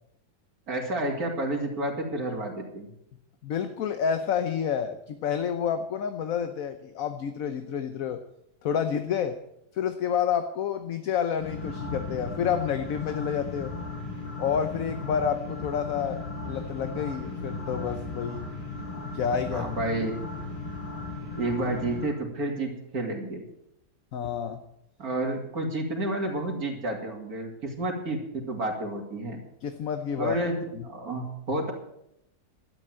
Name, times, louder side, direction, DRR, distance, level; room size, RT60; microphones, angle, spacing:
voice 1, 0.7-2.9 19.5-20.2 21.3-23.4 25.0-29.4 30.2-31.7, right 2 dB, 60° right, 1 dB, 3.1 m, -30 dB
voice 2, 3.4-8.2 8.6-9.4 9.7-13.7 14.4-16.2 16.5-18.4 19.1-19.7 24.1-24.6 29.6-30.4 30.7-30.8, left 8 dB, 60° left, 8 dB, 1.1 m, -29 dB
sound 1, 11.4-22.1, left 2 dB, 25° left, 5.2 m, -36 dB
12.0 x 9.5 x 7.6 m, 0.80 s
omnidirectional pair, 1.8 m